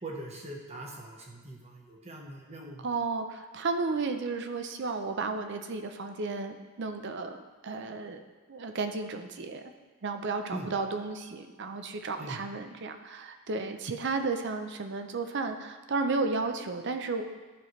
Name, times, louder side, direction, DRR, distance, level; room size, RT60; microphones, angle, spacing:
voice 1, 0.0-2.9 10.5-10.7 12.2-12.4, right 1 dB, 30° right, 0 dB, 1.0 m, -41 dB
voice 2, 2.8-7.4 7.6-8.2 8.5-9.6 10.0-17.2, right 3 dB, 50° right, 7 dB, 0.6 m, -33 dB
12.0 x 5.0 x 3.2 m, 1.3 s
head